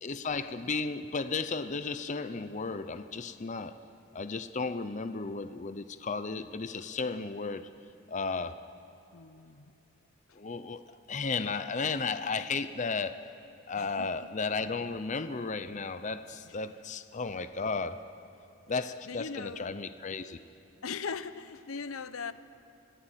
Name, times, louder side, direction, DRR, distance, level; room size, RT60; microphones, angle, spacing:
voice 1, 0.0-3.8 4.1-7.7 8.1-8.6 10.4-10.8 11.1-13.2 13.7-18.0 18.7-20.4, left 4 dB, 35° left, 11 dB, 0.6 m, -34 dB
voice 2, 9.1-9.7 13.8-14.3 19.1-19.6 20.8-22.3, left 5 dB, 80° left, 13 dB, 0.8 m, -39 dB
24.5 x 16.0 x 9.0 m, 2.9 s
head